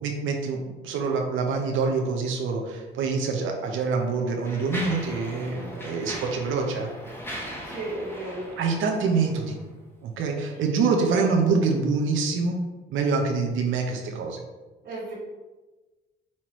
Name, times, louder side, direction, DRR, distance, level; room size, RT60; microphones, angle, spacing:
voice 1, 0.0-6.9 8.6-9.6 10.0-12.6 12.9-14.4, right 4 dB, 80° right, 2 dB, 0.7 m, -25 dB
Mechanisms, 3.1-3.2 3.9-9.7, equal, 10° left, 1.1 m, -39 dB
voice 2, 7.6-8.5 14.8-15.1, right 2 dB, 60° right, -8 dB, 1.5 m, -34 dB
5.6 x 3.0 x 3.0 m, 1.2 s
cardioid pair, 90°, 20 cm